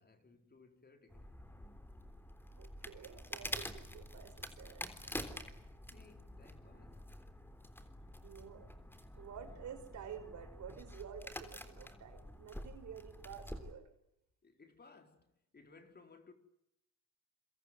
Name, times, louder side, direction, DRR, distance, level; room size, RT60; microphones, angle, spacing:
voice 1, 0.0-1.4 5.9-7.1 14.4-16.3, left 4 dB, 35° left, 4.3 m, -61 dB
sound 1, 1.1-13.7, left 1 dB, 5° left, 3.6 m, -48 dB
voice 2, 2.6-5.5 8.2-8.7 9.1-13.9, right 8 dB, 70° right, 5.7 m, -51 dB
26.5 x 24.0 x 7.9 m
cardioid pair, 90°, 30 cm